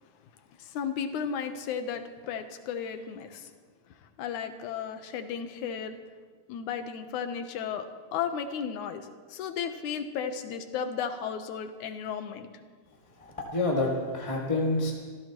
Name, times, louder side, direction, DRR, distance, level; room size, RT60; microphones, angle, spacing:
voice 1, 0.6-3.5 3.9-6.0 6.5-12.5, left 7 dB, 70° left, 7 dB, 2.3 m, -34 dB
voice 2, 13.2-14.9, left 2 dB, 15° left, -4 dB, 1.6 m, -28 dB
26.5 x 15.0 x 3.1 m, 1.5 s
omnidirectional pair, 3.7 m